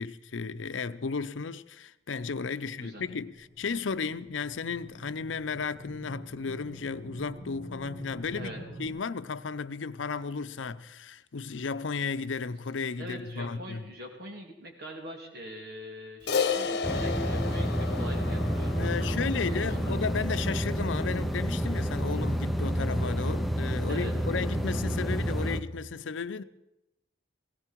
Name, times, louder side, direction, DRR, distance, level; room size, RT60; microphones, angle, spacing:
voice 1, 0.0-13.9 18.8-26.4, left 5 dB, 85° left, 0.6 m, -34 dB
sound 1, 2.8-8.9, equal, 40° right, 4.2 m, -46 dB
voice 2, 13.0-19.9 23.9-24.1, equal, 60° right, 3.0 m, -43 dB
Crash cymbal, 16.3-20.8, left 5 dB, 60° left, 1.1 m, -33 dB
sound 2, 16.8-25.6, equal, ahead, 0.7 m, -29 dB
17.5 x 17.0 x 4.6 m
head